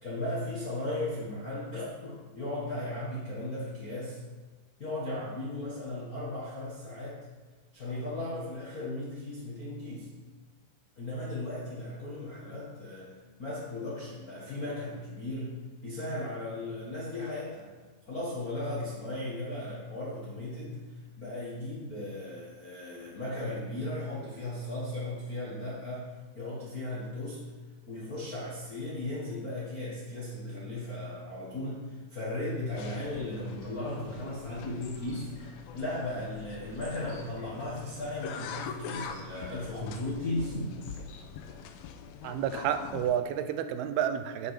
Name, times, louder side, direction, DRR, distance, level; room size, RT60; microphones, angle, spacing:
voice 1, 0.0-4.2 4.8-7.2 7.7-10.1 10.9-15.6 15.8-17.7 18.1-20.9 21.2-27.4 27.9-40.7, left 1 dB, 45° left, -7 dB, 1.1 m, -36 dB
sound 1, 32.7-43.2, left 6 dB, 80° left, 2.4 m, -44 dB
sound 2, 33.8-41.7, left 4 dB, 65° left, 2.6 m, -55 dB
voice 2, 42.2-44.5, right 9 dB, 85° right, 9 dB, 2.6 m, -30 dB
8.2 x 8.0 x 4.9 m, 1.3 s
omnidirectional pair, 4.4 m